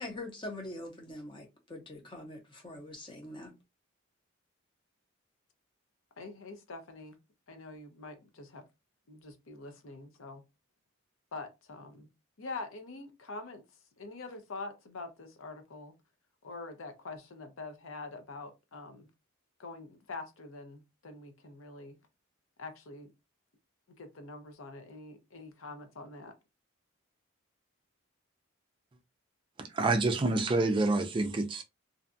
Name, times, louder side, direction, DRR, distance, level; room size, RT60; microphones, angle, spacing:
voice 1, 0.0-3.5, left 1 dB, 20° left, 0.6 m, -43 dB
voice 2, 6.2-7.2 7.5-8.6 9.1-10.4 11.3-12.1 12.4-13.6 14.0-15.9 16.4-19.1 19.6-22.0 22.6-23.1 24.0-26.3, left 3 dB, 70° left, 0.6 m, -45 dB
voice 3, 29.6-31.6, right 2 dB, 25° right, 0.3 m, -28 dB
2.6 x 2.2 x 2.5 m
head